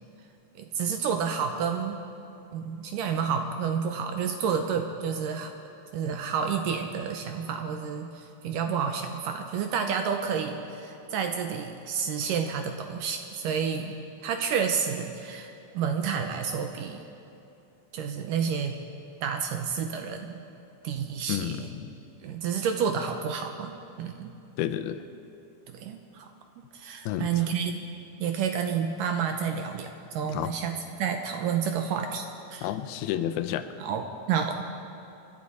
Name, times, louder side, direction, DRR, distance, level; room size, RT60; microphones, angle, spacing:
voice 1, 0.6-2.0 2.5-5.5 5.9-13.9 14.2-17.1 17.9-18.8 19.2-20.4 20.8-21.7 22.2-24.3 25.7-26.3 26.7-27.9 28.2-32.7 33.8-34.6, right 7 dB, 80° right, 5 dB, 2.1 m, -30 dB
voice 2, 21.3-22.0 24.6-25.0 27.1-27.3 30.3-30.5 32.6-33.7, left 11 dB, 90° left, 11 dB, 2.6 m, -30 dB
28.5 x 11.0 x 4.2 m, 2.7 s
omnidirectional pair, 4.4 m